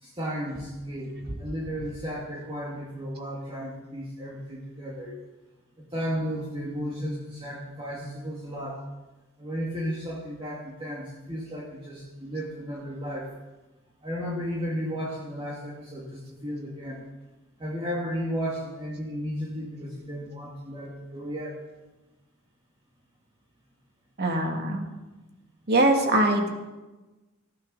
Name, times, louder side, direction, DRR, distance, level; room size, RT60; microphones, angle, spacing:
voice 1, 0.0-5.2 5.9-8.8 9.4-13.3 14.0-17.0 17.6-21.6, equal, 25° right, -5 dB, 2.4 m, -34 dB
voice 2, 24.2-24.8 25.7-26.5, right 1 dB, 50° right, 2 dB, 2.6 m, -22 dB
19.0 x 15.0 x 4.2 m, 1.1 s
head